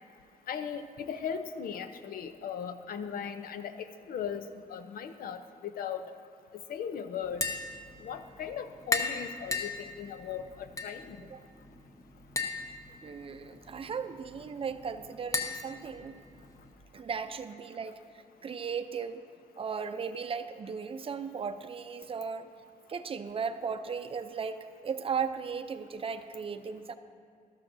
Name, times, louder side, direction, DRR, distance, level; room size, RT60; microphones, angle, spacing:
voice 1, 0.5-4.4 4.7-6.0 6.7-7.4 8.0-11.2, left 7 dB, 85° left, 9 dB, 0.6 m, -38 dB
Tap, 7.2-16.7, left 3 dB, 20° left, 0.8 m, -38 dB
voice 2, 13.0-16.2 16.9-18.0 18.4-19.3 19.6-22.5 22.9-26.9, right 6 dB, 40° right, 9 dB, 0.5 m, -36 dB
13.5 x 12.5 x 2.6 m, 2.5 s
cardioid pair, 120°, 15 cm